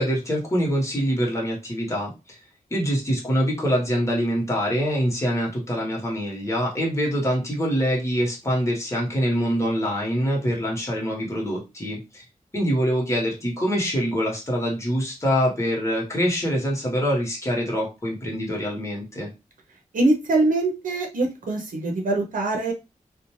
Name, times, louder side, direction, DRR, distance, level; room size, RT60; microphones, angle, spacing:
voice 1, 0.0-2.4 2.7-12.2 12.5-19.3, equal, 20° left, -3 dB, 1.1 m, -24 dB
voice 2, 19.9-22.7, right 2 dB, 80° right, 1 dB, 0.6 m, -23 dB
2.4 x 2.2 x 3.0 m, 0.27 s
wide cardioid pair, 110°, 14 cm